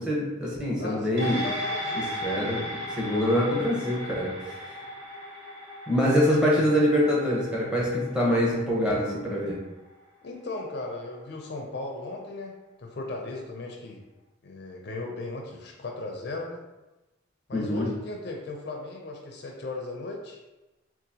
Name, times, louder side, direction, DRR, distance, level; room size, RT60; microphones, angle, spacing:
voice 1, 0.0-1.4 2.2-2.6 2.9-4.8 5.9-9.6 17.5-17.9, equal, 5° right, -6 dB, 0.8 m, -25 dB
voice 2, 0.8-2.2 6.2-6.7 10.2-12.5 12.8-14.0 14.4-16.6 17.5-20.4, left 2 dB, 55° left, 1 dB, 0.4 m, -37 dB
sound 1, 1.2-9.9 10.2-10.3, left 1 dB, 55° right, 0.8 m, -36 dB
3.8 x 2.4 x 2.7 m, 1.0 s
head